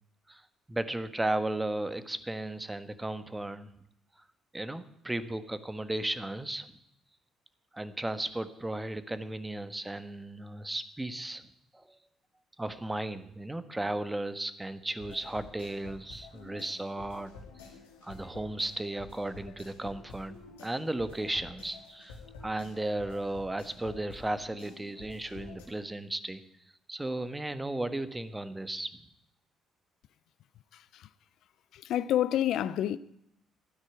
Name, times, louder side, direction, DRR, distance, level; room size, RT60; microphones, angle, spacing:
voice 1, 0.7-3.7 4.5-6.7 7.7-11.5 11.7-12.0 12.6-17.3 18.0-26.4 26.9-28.9, right 1 dB, 15° right, 1.4 m, -35 dB
sound 1, 15.0-25.7, left 4 dB, 85° left, 2.4 m, -50 dB
voice 2, 30.7-31.1 31.7-33.0, left 11 dB, 65° left, 0.4 m, -29 dB
12.5 x 9.9 x 9.4 m
hypercardioid pair, 50°, 0 cm